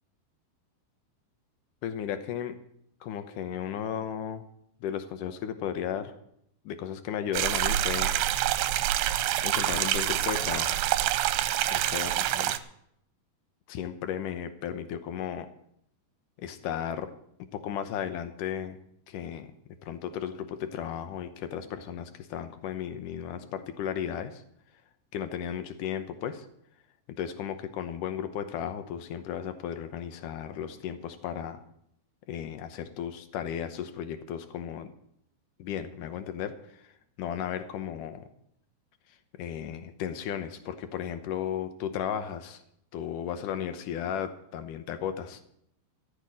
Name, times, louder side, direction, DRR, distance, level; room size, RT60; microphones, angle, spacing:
voice 1, 1.8-2.6 3.0-4.4 4.8-6.1 6.7-8.6 9.4-10.8 11.7-12.5 13.7-15.5 16.4-17.1 17.5-18.8 19.1-19.5 19.8-24.4 25.1-26.5 27.2-31.6 32.3-34.9 35.6-36.9 37.2-38.2 39.4-42.6 42.9-45.4, left 9 dB, 70° left, 9 dB, 2.2 m, -35 dB
sound 1, 7.3-12.6, right 13 dB, 80° right, 2.5 m, -27 dB
14.5 x 6.7 x 9.8 m, 0.74 s
omnidirectional pair, 4.5 m